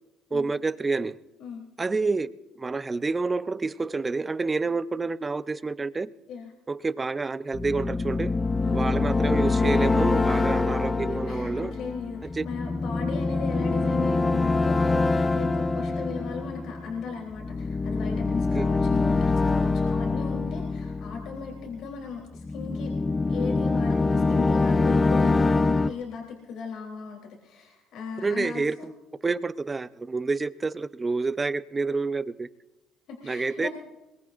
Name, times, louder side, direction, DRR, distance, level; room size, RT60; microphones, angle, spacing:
voice 1, 0.3-1.2 1.8-2.3 2.6-6.1 6.7-8.4 8.7-11.7 12.4-12.5 18.5-18.7 28.2-28.9 29.2-32.5 33.2-33.7, right 3 dB, 25° right, 14 dB, 0.7 m, -28 dB
sound 1, 7.5-21.8 22.4-25.9, left 3 dB, 25° left, 0.6 m, -25 dB
voice 2, 8.6-9.0 11.1-22.9 23.3-28.9 33.1-33.7, left 6 dB, 70° left, 0 dB, 3.4 m, -37 dB
22.0 x 19.0 x 2.6 m, 1.0 s
supercardioid pair, 75°, 0 cm